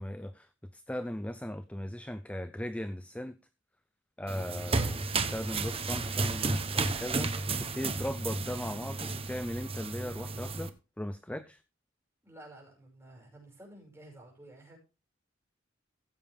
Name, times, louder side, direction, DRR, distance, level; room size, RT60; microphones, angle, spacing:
voice 1, 0.0-3.3 4.2-11.6, left 1 dB, 5° left, 12 dB, 0.5 m, -38 dB
sound 1, 4.3-10.7, right 3 dB, 30° right, 0.9 m, -33 dB
voice 2, 12.2-14.8, right 1 dB, 15° right, 0 dB, 5.7 m, -52 dB
15.0 x 7.4 x 3.5 m, 0.31 s
head